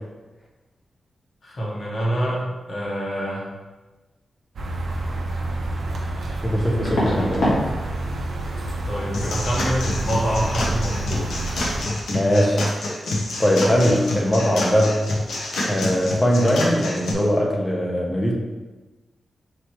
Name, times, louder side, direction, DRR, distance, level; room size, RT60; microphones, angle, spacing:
voice 1, 1.4-3.5 8.8-11.3, equal, 35° left, -5 dB, 1.1 m, -26 dB
sound 1, 4.6-11.8, right 2 dB, 60° right, 0.6 m, -28 dB
sound 2, 5.3-5.4 6.8-7.6 7.9-8.3 8.6-8.8 11.7-11.8 12.1-12.3 12.6-12.7, left 1 dB, 70° left, 1.4 m, -25 dB
voice 2, 6.4-7.6 12.1-12.6 13.4-15.0 15.6-18.3, equal, 15° left, -1 dB, 0.6 m, -20 dB
sound 3, 9.1-17.1, left 1 dB, 85° left, 0.7 m, -28 dB
4.7 x 3.3 x 2.9 m, 1.2 s
wide cardioid pair, 180°, 0 cm